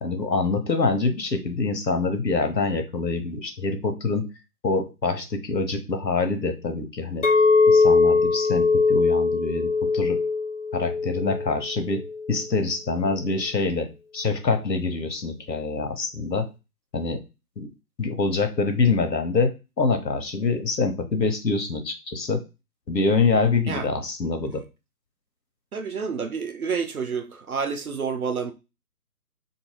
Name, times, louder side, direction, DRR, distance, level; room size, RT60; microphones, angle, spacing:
voice 1, 0.0-4.3 4.6-7.3 7.7-9.7 9.9-10.2 10.7-12.0 12.3-16.5 16.9-17.2 17.6-17.7 18.0-22.4 22.9-24.6, left 4 dB, 90° left, 0.9 m, -25 dB
Chink clink, 7.2-12.4, left 4 dB, 50° left, 0.6 m, -21 dB
voice 2, 25.7-28.5, right 5 dB, 60° right, 0.6 m, -29 dB
2.7 x 2.7 x 2.9 m
figure-of-eight pair, 145°, 49 cm